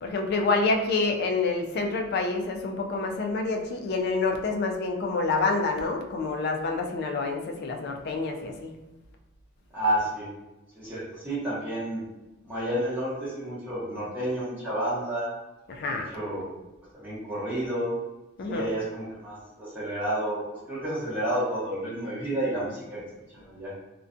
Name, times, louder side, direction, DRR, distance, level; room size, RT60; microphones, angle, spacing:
voice 1, 0.0-8.7 15.7-16.1 18.4-18.6, left 3 dB, 50° left, 3 dB, 0.3 m, -27 dB
voice 2, 9.7-10.3 10.7-12.0 12.4-15.3 15.8-16.6 16.9-17.9 18.5-20.4 20.7-23.0 23.4-23.7, right 1 dB, 10° right, -10 dB, 0.9 m, -30 dB
2.4 x 2.2 x 2.5 m, 1.0 s
head